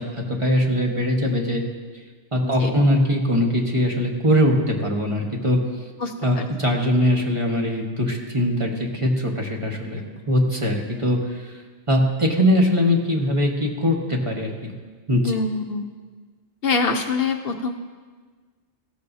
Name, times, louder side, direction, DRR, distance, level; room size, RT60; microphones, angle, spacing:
voice 1, 0.0-1.6 2.3-5.6 6.2-11.6 11.9-14.7 15.1-15.3, equal, 25° right, -1 dB, 1.4 m, -21 dB
voice 2, 2.4-2.7 6.0-6.4 15.2-15.8 16.6-17.7, left 4 dB, 60° left, 5 dB, 0.8 m, -25 dB
16.5 x 13.0 x 2.7 m, 1.5 s
omnidirectional pair, 1.2 m